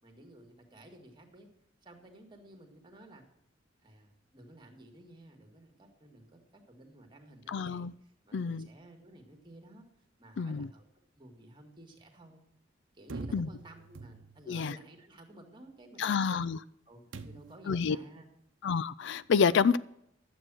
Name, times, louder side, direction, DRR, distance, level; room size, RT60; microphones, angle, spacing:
voice 1, 0.0-1.5 1.8-3.2 3.8-9.8 10.2-10.8 11.2-12.4 12.9-16.5 16.9-18.3, right 1 dB, 25° right, 2.1 m, -54 dB
voice 2, 7.5-7.9 8.3-8.7 10.4-10.7 13.3-13.5 14.5-14.8 16.0-16.6 17.7-18.0 18.6-19.8, left 6 dB, 65° left, 0.4 m, -28 dB
sound 1, 13.1-14.6 17.1-17.7, right 3 dB, 85° right, 0.8 m, -44 dB
11.5 x 7.8 x 6.2 m
head